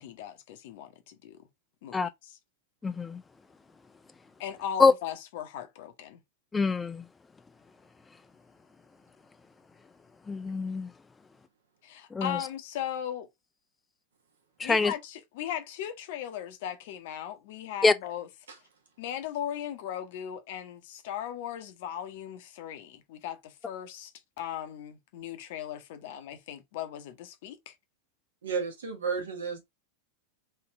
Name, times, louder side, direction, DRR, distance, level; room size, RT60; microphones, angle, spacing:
voice 1, 0.0-1.4 1.8-2.0 4.4-6.2 11.8-13.3 14.6-18.3 19.0-24.1 24.4-27.7, left 10 dB, 50° left, 0.7 m, -38 dB
voice 2, 2.8-3.2 4.8-4.9 6.5-7.0 10.3-10.9 12.1-12.4 14.6-14.9 17.8-17.9, left 4 dB, 15° left, 0.3 m, -24 dB
voice 3, 28.4-29.6, right 5 dB, 65° right, 1.0 m, -32 dB
3.2 x 2.8 x 3.4 m
figure-of-eight pair, 90°, 0 cm